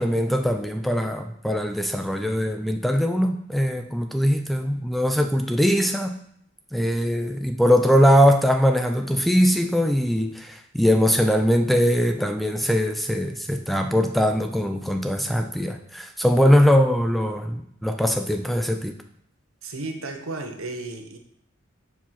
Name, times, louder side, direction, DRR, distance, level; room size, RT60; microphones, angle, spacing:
voice 1, 0.0-6.2 6.7-18.9, equal, ahead, 6 dB, 0.4 m, -21 dB
voice 2, 19.6-21.2, right 2 dB, 85° right, 5 dB, 1.1 m, -33 dB
7.1 x 4.7 x 5.8 m, 0.70 s
head